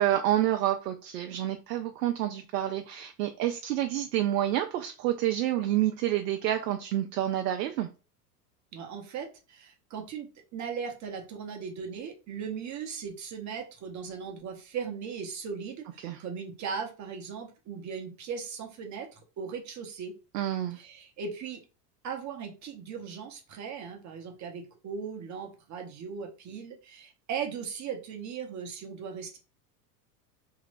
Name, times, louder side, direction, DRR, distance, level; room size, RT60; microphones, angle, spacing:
voice 1, 0.0-7.9 16.0-16.2 20.3-20.8, right 12 dB, 75° right, 0.6 m, -28 dB
voice 2, 8.7-20.2 20.7-21.6 22.0-29.4, right 6 dB, 35° right, 0.9 m, -38 dB
3.0 x 2.8 x 2.5 m
hypercardioid pair, 95°, 49 cm